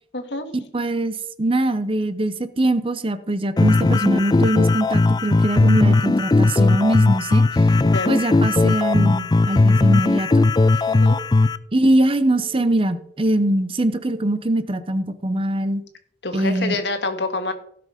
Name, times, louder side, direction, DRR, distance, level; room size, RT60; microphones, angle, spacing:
voice 1, 0.1-0.5 7.8-8.2 10.9-11.2 16.2-17.5, left 2 dB, 75° left, 7 dB, 1.7 m, -27 dB
voice 2, 0.7-7.4 8.1-10.5 11.7-15.8 16.3-16.8, right 1 dB, 30° right, 12 dB, 0.8 m, -22 dB
sound 1, 3.6-11.6, left 3 dB, 25° left, 0.3 m, -17 dB
sound 2, 9.1-10.2 10.6-11.7 12.1-13.2 13.6-14.8, right 2 dB, 40° left, 6.1 m, -46 dB
16.5 x 6.0 x 5.1 m, 0.67 s
head